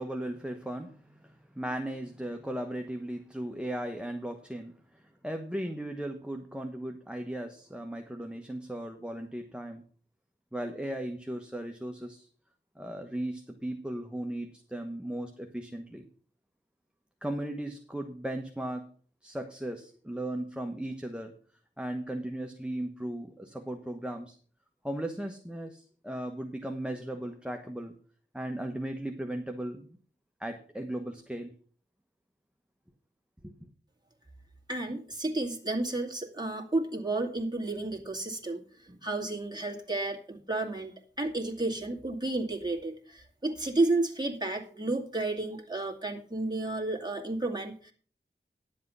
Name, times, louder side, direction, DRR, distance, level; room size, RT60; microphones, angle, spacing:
voice 1, 0.0-9.8 10.5-12.3 12.8-16.1 17.2-18.9 19.2-21.3 21.8-24.4 24.8-27.9 28.3-29.9 30.4-31.5 33.4-33.5, right 1 dB, 5° right, 4 dB, 1.2 m, -37 dB
voice 2, 34.7-47.9, right 2 dB, 20° right, 1 dB, 2.5 m, -32 dB
11.0 x 7.7 x 5.6 m, 0.44 s
wide cardioid pair, 45°, 20 cm